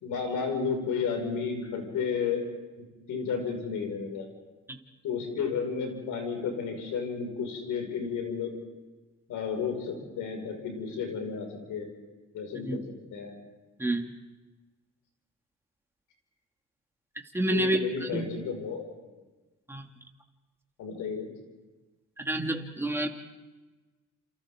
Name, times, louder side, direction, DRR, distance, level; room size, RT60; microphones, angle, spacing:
voice 1, 0.0-2.4 2.8-4.3 5.0-8.5 9.3-11.9 12.3-12.8 13.1-13.3 17.5-18.9 20.8-21.3, left 6 dB, 85° left, 2 dB, 6.0 m, -32 dB
voice 2, 17.3-18.3 19.7-19.8 22.2-23.1, right 1 dB, 10° right, 2 dB, 2.5 m, -28 dB
29.5 x 28.5 x 3.9 m, 1.2 s
cardioid pair, 90°, 30 cm